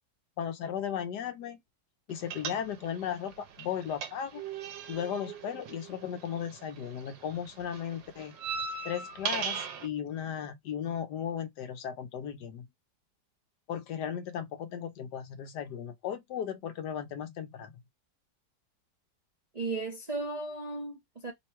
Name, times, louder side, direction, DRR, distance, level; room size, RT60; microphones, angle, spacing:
voice 1, 0.4-1.6 2.1-4.4 4.9-8.3 8.8-12.7 13.7-17.7, left 8 dB, 70° left, 1.2 m, -36 dB
sound 1, 2.3-3.1 3.3-6.7 7.0-9.9, right 6 dB, 80° right, 1.5 m, -37 dB
voice 2, 19.5-21.3, right 3 dB, 35° right, 0.7 m, -35 dB
3.5 x 2.2 x 4.3 m
omnidirectional pair, 1.9 m